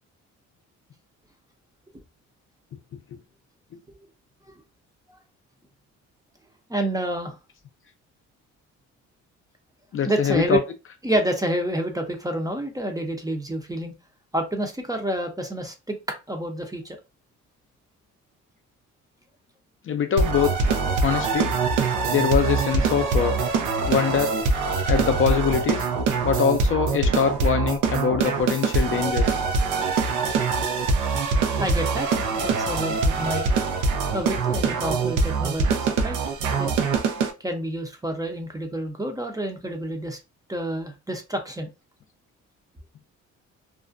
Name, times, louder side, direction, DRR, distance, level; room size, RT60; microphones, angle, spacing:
voice 1, 6.7-7.4 10.0-10.6 11.0-13.9 14.3-16.0 16.3-17.0 31.6-33.5 34.1-36.2 36.6-36.7 37.4-40.2 40.5-41.7, right 1 dB, 10° right, 0.5 m, -28 dB
voice 2, 9.9-10.6 19.8-20.5 21.0-21.5 22.1-23.4 23.9-24.3 24.8-25.9 26.2-29.4, left 7 dB, 45° left, 0.5 m, -23 dB
sound 1, 20.2-37.3, right 4 dB, 90° right, 0.5 m, -23 dB
2.4 x 2.1 x 2.5 m
cardioid pair, 90°, 30 cm